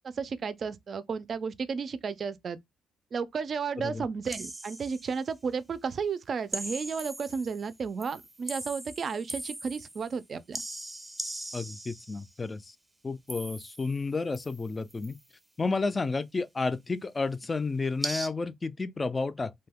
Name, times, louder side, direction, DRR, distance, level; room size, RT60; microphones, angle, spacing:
voice 1, 0.0-2.6 3.1-10.6, right 5 dB, 50° right, 0.4 m, -33 dB
sound 1, 4.2-5.2 6.5-7.7 8.0-10.2 10.5-12.3 13.3-14.0 14.3-15.2 18.0-18.3, right 1 dB, 10° right, 0.6 m, -39 dB
voice 2, 11.5-12.8 13.0-15.2 15.6-19.5, left 3 dB, 25° left, 0.3 m, -31 dB
2.7 x 2.2 x 3.4 m
cardioid pair, 90°, 0 cm